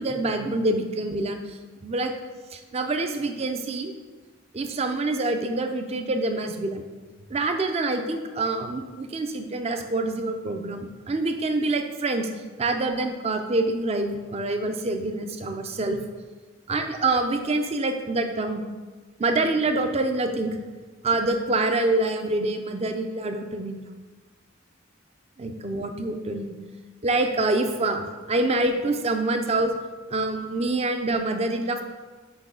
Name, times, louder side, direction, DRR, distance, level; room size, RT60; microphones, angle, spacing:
voice 1, 0.0-2.1 2.5-3.9 4.5-6.8 7.3-12.3 12.6-16.0 16.7-18.6 19.2-20.6 21.0-23.8 25.4-26.5 27.0-29.7 30.1-31.8, right 2 dB, 30° right, 6 dB, 0.4 m, -26 dB
6.1 x 4.9 x 3.7 m, 1.3 s
head